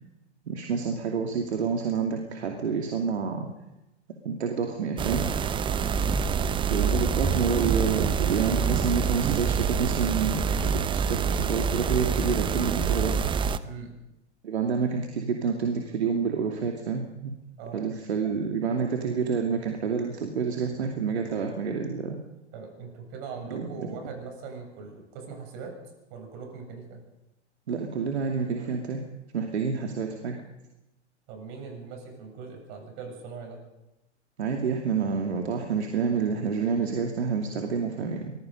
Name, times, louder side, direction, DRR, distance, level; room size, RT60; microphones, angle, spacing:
voice 1, 0.5-3.5 4.2-5.3 6.7-13.2 14.4-17.3 17.7-22.2 23.5-23.9 27.7-29.0 29.3-30.4 34.4-38.3, right 5 dB, 65° right, 3 dB, 2.5 m, -28 dB
sound 1, 5.0-13.6, right 6 dB, 15° right, 0.7 m, -26 dB
voice 2, 13.6-14.0 17.6-17.9 22.5-25.7 26.1-27.0 31.3-33.6, right 5 dB, 45° right, 3 dB, 7.8 m, -41 dB
25.5 x 20.5 x 5.3 m, 0.96 s
figure-of-eight pair, 100°, 35 cm